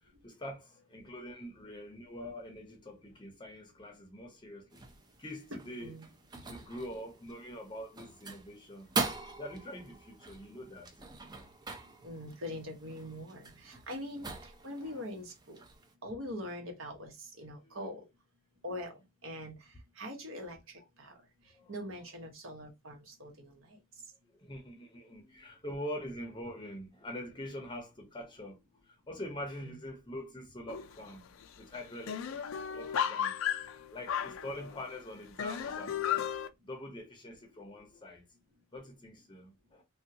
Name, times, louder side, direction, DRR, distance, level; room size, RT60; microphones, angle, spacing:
voice 1, 0.0-4.8 5.2-5.9 6.5-8.9 9.4-10.9 14.8-14.9 17.6-17.8 21.5-21.7 24.4-31.2 31.6-32.4 32.7-33.3 33.9-36.3 36.6-38.2 38.7-39.8, left 1 dB, 25° left, 0.7 m, -44 dB
sound 1, 4.7-15.9, right 3 dB, 20° right, 0.5 m, -43 dB
voice 2, 12.0-15.6 16.0-18.1 18.6-21.2 21.7-23.8 29.6-29.8, left 1 dB, 75° right, 1.1 m, -43 dB
sound 2, 30.7-31.1 31.4-31.5 31.8-34.9 35.4-36.5, left 9 dB, 75° left, 0.4 m, -34 dB
3.5 x 2.3 x 2.7 m
head